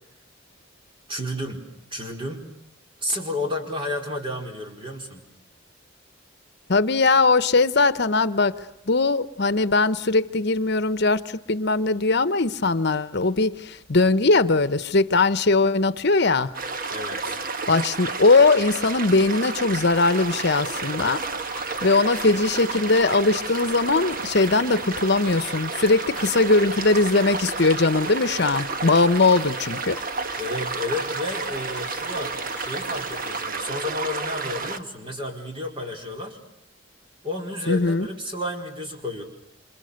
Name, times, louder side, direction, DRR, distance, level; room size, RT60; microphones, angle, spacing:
voice 1, 1.1-1.6 1.9-2.5 3.0-5.2 16.9-17.4 30.4-36.4 37.2-39.2, left 1 dB, 25° right, 4.7 m, -31 dB
voice 2, 6.7-8.6 8.9-16.5 17.7-21.2 21.8-30.0 37.7-38.1, left 3 dB, 60° left, 1.0 m, -20 dB
sound 1, 16.5-34.8, right 4 dB, 45° right, 1.4 m, -31 dB
sound 2, 20.0-33.5, left 3 dB, 10° left, 4.8 m, -46 dB
28.5 x 27.0 x 6.6 m
head